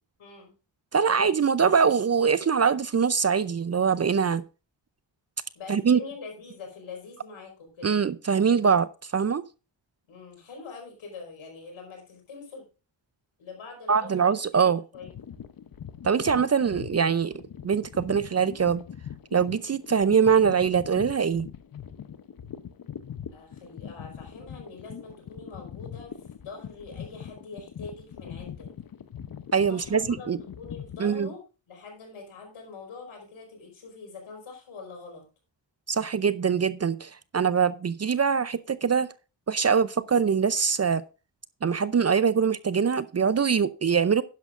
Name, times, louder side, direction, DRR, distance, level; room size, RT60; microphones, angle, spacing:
voice 1, 0.2-0.5 5.5-8.0 10.1-12.6 13.4-14.3 14.9-15.1 23.3-26.2 26.4-28.7 29.7-35.3, left 4 dB, 85° left, 4.8 m, -44 dB
voice 2, 0.9-4.4 5.7-6.0 7.8-8.9 9.1-9.4 13.9-14.8 16.0-17.3 17.6-18.8 19.3-21.5 29.5-30.4 31.0-31.3 35.9-39.1 39.5-41.0 41.6-44.2, right 6 dB, 35° right, 0.5 m, -23 dB
sound 1, 14.9-31.1, left 8 dB, 50° left, 0.8 m, -42 dB
11.5 x 10.5 x 2.5 m
cardioid pair, 60°, 47 cm